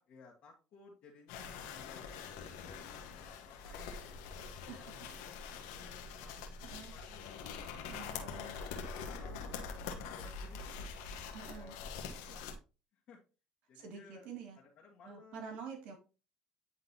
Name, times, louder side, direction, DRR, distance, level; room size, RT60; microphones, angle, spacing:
voice 1, 0.0-6.3 6.7-7.7 8.1-9.6 10.0-11.0 11.5-12.5 12.9-13.2 13.7-14.3 14.6-15.4, left 4 dB, 60° left, -3 dB, 1.5 m, -59 dB
sound 1, 1.3-12.5, left 5 dB, 85° left, 1.1 m, -44 dB
voice 2, 7.9-8.6 11.3-11.7 13.7-14.6 15.0-15.9, right 6 dB, 70° right, 4 dB, 2.1 m, -47 dB
9.7 x 3.7 x 2.8 m, 0.33 s
supercardioid pair, 90°, 2 cm